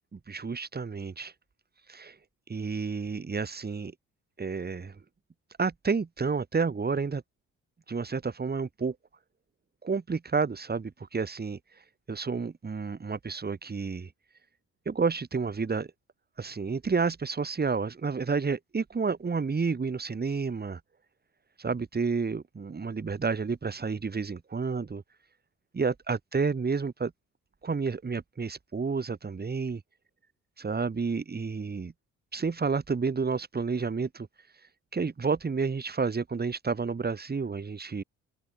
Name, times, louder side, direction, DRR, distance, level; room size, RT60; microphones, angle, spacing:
voice 1, 0.1-1.3 1.9-2.2 2.5-3.9 4.4-5.0 5.6-7.2 7.9-9.0 9.8-11.6 12.1-14.1 14.9-15.9 16.4-20.8 21.6-25.0 25.7-27.1 27.6-29.8 30.6-31.9 32.3-34.3 34.9-38.0, right 4 dB, 30° right, 5.7 m, -30 dB
cardioid pair, 90°, 30 cm